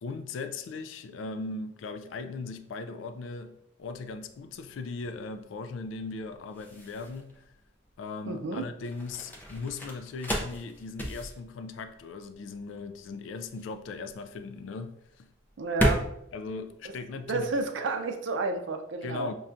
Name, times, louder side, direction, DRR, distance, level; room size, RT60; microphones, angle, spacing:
voice 1, 0.0-7.4 8.0-15.3 16.3-17.5 19.0-19.3, left 3 dB, 80° left, 0.3 m, -38 dB
sound 1, 3.8-17.7, equal, 10° left, 0.4 m, -35 dB
voice 2, 8.3-8.6 15.6-16.0 16.8-16.9 17.3-19.3, right 3 dB, 75° right, 0.5 m, -31 dB
5.5 x 2.3 x 2.5 m
head